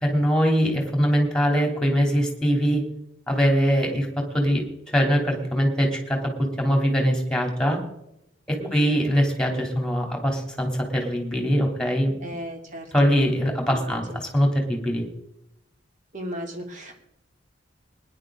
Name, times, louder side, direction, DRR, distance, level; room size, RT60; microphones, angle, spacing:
voice 1, 0.0-2.8 3.3-4.6 4.9-6.2 6.6-7.8 8.5-12.2 12.9-15.0, equal, 5° left, 2 dB, 3.1 m, -22 dB
voice 2, 8.6-9.0 12.2-13.1 13.6-14.2 16.1-17.0, equal, 40° right, 2 dB, 2.8 m, -36 dB
20.0 x 10.5 x 3.8 m, 0.80 s
head